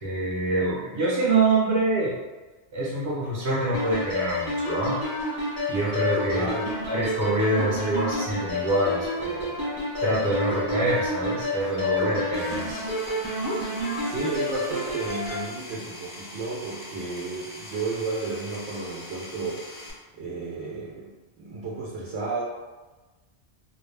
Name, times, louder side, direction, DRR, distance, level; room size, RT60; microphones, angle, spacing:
voice 1, 0.0-2.2 2.7-5.0 5.7-6.5 6.9-9.5 10.0-12.8, right 2 dB, 35° right, -6 dB, 0.6 m, -25 dB
sound 1, 3.7-15.4, left 1 dB, 25° left, 0.6 m, -29 dB
voice 2, 6.3-6.7 14.0-19.6 20.1-22.4, right 3 dB, 90° right, -5 dB, 0.9 m, -32 dB
Power tool, 12.3-19.9, left 1 dB, 50° left, 0.9 m, -42 dB
2.3 x 2.1 x 3.1 m, 1.2 s
omnidirectional pair, 1.1 m